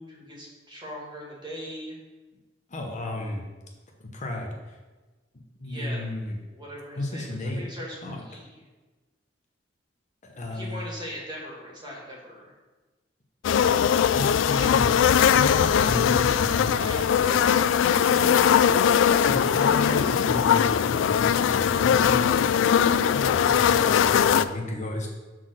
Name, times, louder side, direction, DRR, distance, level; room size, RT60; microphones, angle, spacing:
voice 1, 0.0-2.0 5.6-6.1 6.5-8.6 10.5-12.5 14.4-14.8 16.6-17.0 17.4-17.8 18.1-20.2, equal, 25° right, -4 dB, 2.0 m, -39 dB
voice 2, 2.7-3.4 4.0-4.8 5.3-6.4 7.0-7.6 8.0-8.2 10.2-10.9 14.1-17.3 19.3-22.3 23.1-25.1, left 1 dB, 40° left, 0 dB, 0.9 m, -33 dB
sound 1, 13.4-24.4, left 8 dB, 75° left, 0.3 m, -20 dB
6.0 x 4.1 x 6.2 m, 1.2 s
head